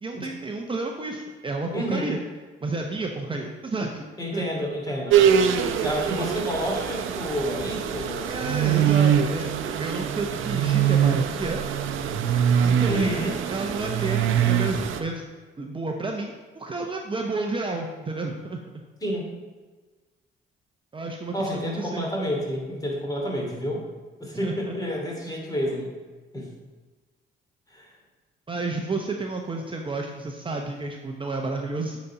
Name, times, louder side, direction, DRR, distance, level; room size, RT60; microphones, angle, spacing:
voice 1, 0.0-2.2 2.6-4.1 4.3-4.4 6.1-6.3 8.3-11.6 12.6-15.3 15.6-18.6 20.9-22.1 24.4-24.7 28.5-32.0, right 3 dB, 25° right, 2 dB, 0.8 m, -31 dB
voice 2, 1.7-2.2 4.2-5.2 5.8-8.8 12.9-13.3 19.0-19.3 21.3-23.8 24.2-25.9 26.3-26.5 27.7-27.9, equal, 20° left, -2 dB, 2.6 m, -29 dB
sound 1, 5.1-15.0, right 8 dB, 80° right, 0.6 m, -23 dB
8.4 x 4.1 x 5.8 m, 1.3 s
cardioid pair, 90°, 20 cm